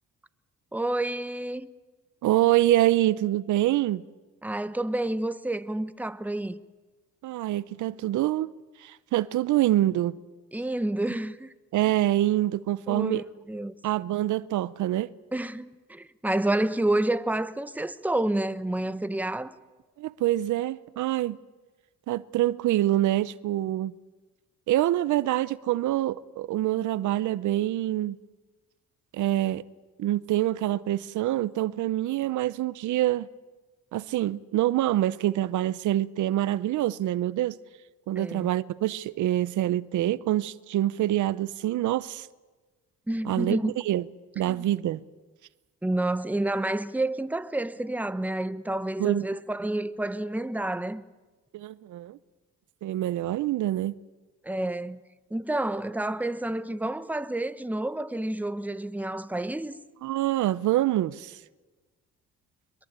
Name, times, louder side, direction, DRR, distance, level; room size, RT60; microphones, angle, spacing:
voice 1, 0.7-1.7 4.4-6.6 10.5-11.5 12.9-13.7 15.3-19.5 38.2-38.5 43.1-43.8 44.5-44.6 45.8-51.0 54.4-55.0 55.3-59.8, right 1 dB, 5° right, 1.1 m, -29 dB
voice 2, 2.2-4.0 7.2-8.5 8.8-10.2 11.7-13.2 13.8-15.1 20.0-21.4 22.1-23.9 24.7-28.2 29.1-29.6 30.0-33.3 33.9-37.6 38.1-42.3 43.2-44.0 44.4-45.0 49.0-49.2 51.5-52.2 52.8-54.0 60.0-61.4, right 14 dB, 80° right, 0.7 m, -25 dB
23.5 x 22.0 x 8.9 m
cardioid pair, 90°, 30 cm